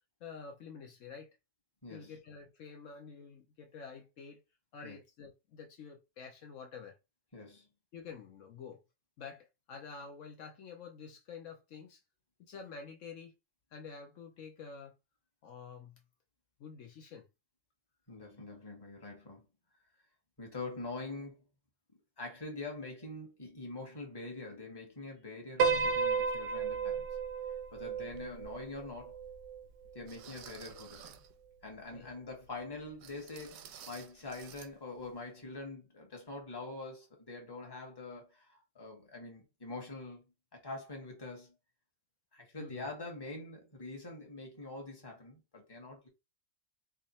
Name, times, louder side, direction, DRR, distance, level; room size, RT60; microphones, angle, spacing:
voice 1, 0.2-1.3 1.9-4.4 4.7-7.0 7.9-8.8 9.2-12.0 12.4-13.3 13.7-14.9 15.4-16.0 16.6-17.3 31.9-32.1 42.6-42.9, left 5 dB, 70° left, 1.0 m, -48 dB
voice 2, 1.8-2.2 4.8-5.0 7.3-7.7 18.1-19.4 20.4-21.4 22.2-27.1 27.7-29.2 29.9-31.2 31.6-40.2 40.5-41.5 42.3-46.1, left 2 dB, 20° left, 1.2 m, -44 dB
Piano, 25.6-30.0, right 5 dB, 55° right, 0.6 m, -33 dB
sound 1, 28.1-28.3 28.9-29.0 30.1-31.3 33.0-34.7 35.0-35.2 35.6-35.7, right 9 dB, 90° right, 1.0 m, -52 dB
3.5 x 2.4 x 4.0 m
omnidirectional pair, 1.4 m